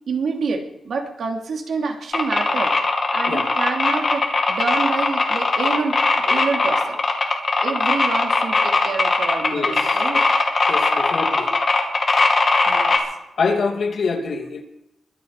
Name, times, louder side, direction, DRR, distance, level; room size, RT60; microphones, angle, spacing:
voice 1, 0.1-2.7 3.1-7.0 7.6-10.2 12.7-13.0, right 4 dB, 65° right, 2 dB, 3.0 m, -27 dB
sound 1, 2.1-13.0, left 3 dB, 35° left, 2.5 m, -19 dB
voice 2, 9.5-10.0 10.7-11.5 13.4-14.6, left 4 dB, 55° left, 2 dB, 2.8 m, -25 dB
23.0 x 8.5 x 6.0 m, 0.88 s
wide cardioid pair, 170°, 0 cm